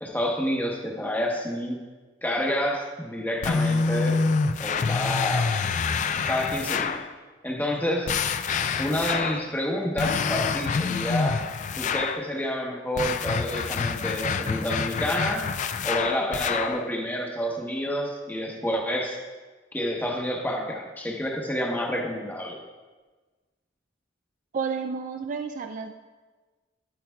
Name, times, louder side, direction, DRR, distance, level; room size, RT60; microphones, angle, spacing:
voice 1, 0.0-1.8 2.2-4.2 4.6-5.6 6.3-7.1 7.4-8.2 8.7-11.4 11.8-15.5 15.8-19.2 19.7-22.6, equal, 10° left, 0 dB, 1.0 m, -29 dB
sound 1, 3.4-7.1 8.1-9.5 10.0-12.2 13.0-16.8, left 5 dB, 40° left, 0.3 m, -27 dB
voice 2, 24.5-25.9, right 5 dB, 40° right, 6 dB, 0.3 m, -31 dB
11.0 x 8.6 x 2.3 m, 1.3 s
head